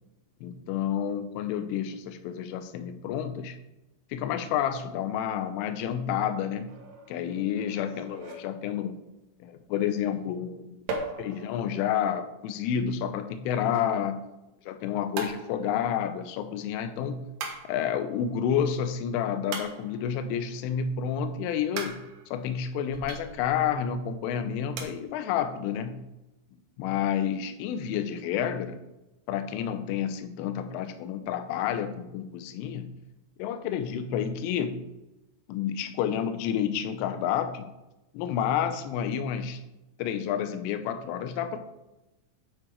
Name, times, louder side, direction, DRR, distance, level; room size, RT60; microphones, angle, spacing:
voice 1, 0.4-3.6 4.1-6.8 7.1-8.9 9.4-10.7 11.2-14.2 14.7-17.2 17.7-22.0 22.3-26.0 26.8-28.8 29.3-32.9 33.4-34.8 35.5-37.7 38.1-39.6 40.0-41.6, left 8 dB, 85° left, 9 dB, 3.2 m, -30 dB
sound 1, 6.7-9.0 10.9-13.9 15.2-16.6 17.4-18.5 19.5-20.4 21.8-23.7 24.1-24.2 24.8-24.9, right 3 dB, 70° right, 2.0 m, -40 dB
8.9 x 6.5 x 4.6 m, 0.99 s
omnidirectional pair, 5.8 m